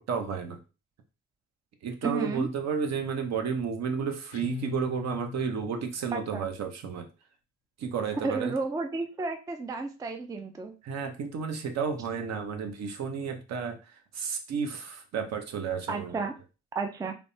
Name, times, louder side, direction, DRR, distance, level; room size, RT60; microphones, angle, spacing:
voice 1, 0.1-0.6 1.8-7.1 7.8-8.5 10.8-16.2, right 6 dB, 60° right, 5 dB, 0.7 m, -32 dB
voice 2, 2.0-2.5 6.1-6.5 8.2-10.7 15.9-16.3 16.7-17.1, right 3 dB, 10° right, 6 dB, 0.3 m, -32 dB
Guitar, 4.3-6.0, left 13 dB, 80° left, 0.6 m, -40 dB
3.4 x 2.0 x 2.6 m, 0.32 s
cardioid pair, 90°, 30 cm